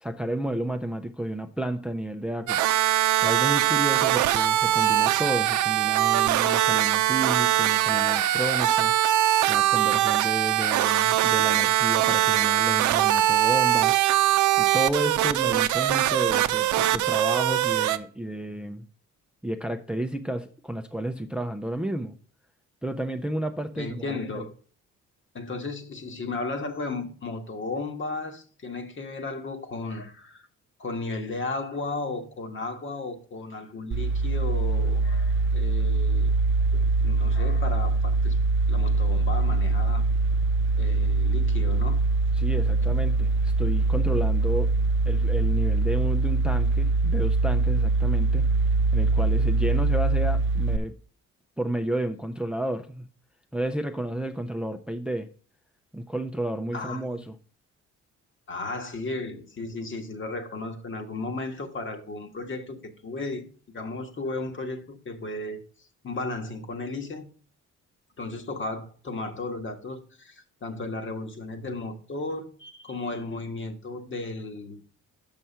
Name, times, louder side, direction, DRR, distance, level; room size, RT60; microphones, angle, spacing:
voice 1, 0.0-2.6 3.2-8.9 9.5-14.0 14.6-18.8 19.4-22.2 22.8-24.0 24.3-24.5 42.4-44.7 45.1-48.4 48.9-50.9 51.6-53.0 53.5-55.3 55.9-57.4, right 1 dB, 5° right, 0.5 m, -31 dB
sound 1, 2.5-18.0, right 13 dB, 75° right, 0.6 m, -22 dB
voice 2, 23.7-24.5 25.3-30.5 30.8-36.4 36.7-38.4 38.7-40.0 40.8-42.1 56.7-57.2 58.5-63.4 63.7-67.3 68.2-74.8, left 3 dB, 40° left, 1.4 m, -34 dB
sound 2, 33.9-50.8, right 3 dB, 40° right, 0.7 m, -23 dB
6.1 x 5.7 x 5.5 m
cardioid pair, 90°, 30 cm